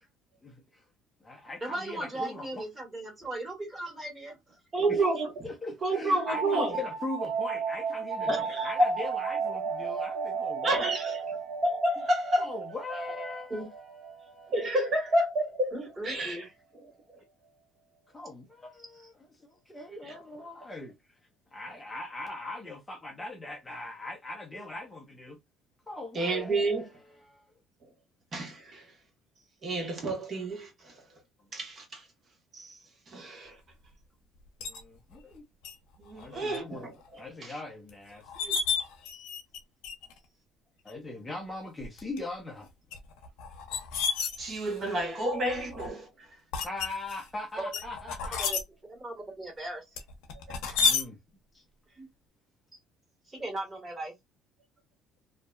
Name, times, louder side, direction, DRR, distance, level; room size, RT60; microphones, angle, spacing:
voice 1, 0.4-0.8 1.2-2.6 4.9-5.0 5.4-10.8 11.1-11.3 12.4-13.7 14.1-14.5 18.1-19.1 19.4-20.9 21.5-25.4 25.9-26.9 27.2-27.5 34.6-35.4 36.1-36.9 37.2-38.6 40.8-42.7 46.6-48.5 50.8-51.2 51.5-51.6, left 2 dB, 15° left, 0.6 m, -40 dB
voice 2, 1.6-4.6 13.5-13.7 15.7-16.4 18.9-19.1 39.1-39.2 47.6-47.7 48.2-48.6 48.9-49.8 50.6-50.8 52.0-52.1 53.2-54.1, right 1 dB, 20° right, 1.5 m, -38 dB
voice 3, 4.7-5.3 5.8-6.8 8.3-9.0 10.6-11.4 11.6-12.5 14.5-15.8 16.0-16.4 26.1-26.8 28.3-28.9 29.6-30.9 31.5-32.0 32.5-32.8 33.1-33.6 36.0-37.5 44.4-46.1 50.8-50.9, right 1 dB, 40° right, 0.9 m, -29 dB
sound 1, 6.2-15.6, right 6 dB, 70° right, 0.5 m, -35 dB
sound 2, 34.6-34.8 35.6-35.8 36.2-36.6 37.0-37.1 37.9-38.0 38.2-39.6 39.8-40.2 40.9-41.0 41.8-42.2 42.9-44.9 45.5-45.9 46.5-47.2 47.7-48.6 50.0-51.0, left 6 dB, 80° left, 0.6 m, -31 dB
2.6 x 2.1 x 2.2 m
cardioid pair, 105°, 0 cm